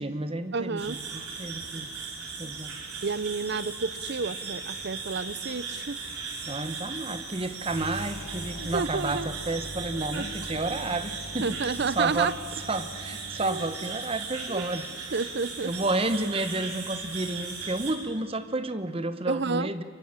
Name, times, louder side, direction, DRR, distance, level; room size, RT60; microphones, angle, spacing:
voice 1, 0.0-1.9 2.4-2.7 6.4-12.3 12.7-14.8 15.6-19.8, right 2 dB, 25° right, 10 dB, 1.0 m, -31 dB
voice 2, 0.5-1.0 3.0-6.0 8.6-9.3 10.1-10.3 11.4-12.3 13.4-13.6 14.5-14.6 15.1-15.7 19.3-19.7, right 4 dB, 50° right, 17 dB, 0.6 m, -30 dB
sound 1, 0.8-17.9, right 4 dB, 85° right, 5.1 m, -38 dB
sound 2, 7.6-13.8, left 1 dB, 85° left, 4.2 m, -43 dB
24.5 x 23.0 x 8.8 m, 2.3 s
head